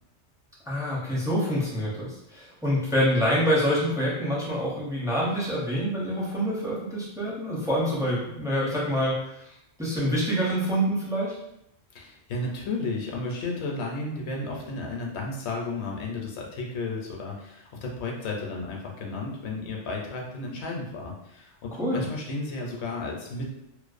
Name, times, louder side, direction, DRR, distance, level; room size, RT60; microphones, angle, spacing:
voice 1, 0.6-11.3 21.8-22.0, equal, 5° right, -7 dB, 0.3 m, -26 dB
voice 2, 11.9-23.5, left 3 dB, 70° left, -1 dB, 0.8 m, -33 dB
2.5 x 2.1 x 2.4 m, 0.82 s
omnidirectional pair, 1.2 m